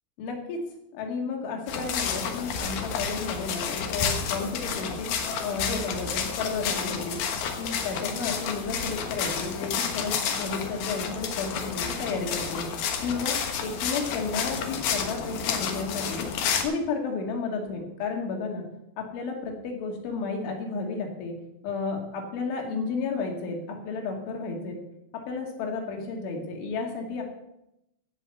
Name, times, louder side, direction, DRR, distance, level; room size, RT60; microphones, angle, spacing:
voice 1, 0.2-0.6 0.9-5.1 5.4-7.2 7.6-12.7 13.0-16.3 16.6-18.6 19.0-21.3 21.6-24.8 25.1-27.2, left 4 dB, 85° left, 1 dB, 4.5 m, -32 dB
sound 1, 1.7-16.6, left 7 dB, 65° left, 2.8 m, -30 dB
16.0 x 5.7 x 7.7 m, 0.84 s
omnidirectional pair, 5.3 m